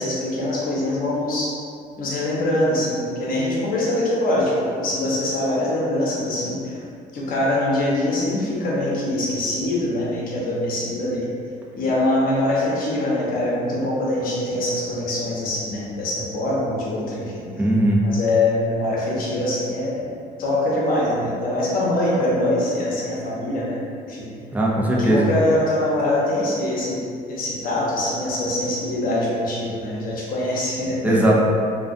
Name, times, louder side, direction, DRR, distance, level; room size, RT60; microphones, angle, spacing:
voice 1, 0.0-1.5 2.0-6.8 7.1-11.3 11.7-17.5 18.0-20.1 20.4-23.8 24.1-24.3 25.0-27.0 27.3-31.3, left 1 dB, 55° left, -5 dB, 0.7 m, -23 dB
voice 2, 17.6-18.0 24.5-25.3 31.0-31.4, right 1 dB, 10° right, -4 dB, 0.4 m, -18 dB
2.3 x 2.2 x 2.4 m, 2.5 s
cardioid pair, 110°, 17 cm